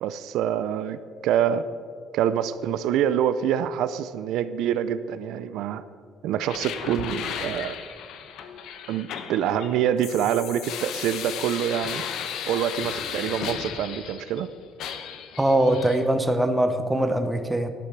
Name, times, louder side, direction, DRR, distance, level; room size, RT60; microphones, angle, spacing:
voice 1, 0.0-1.7 2.1-5.8 6.2-7.8 8.9-12.0 12.4-14.5, right 9 dB, 75° right, 14 dB, 0.5 m, -26 dB
sound 1, 6.4-14.4 14.8-16.0, left 8 dB, 65° left, 0.9 m, -35 dB
voice 2, 15.4-17.7, right 1 dB, 5° right, 8 dB, 0.7 m, -22 dB
11.5 x 8.5 x 5.9 m, 2.3 s
cardioid pair, 155°, 0 cm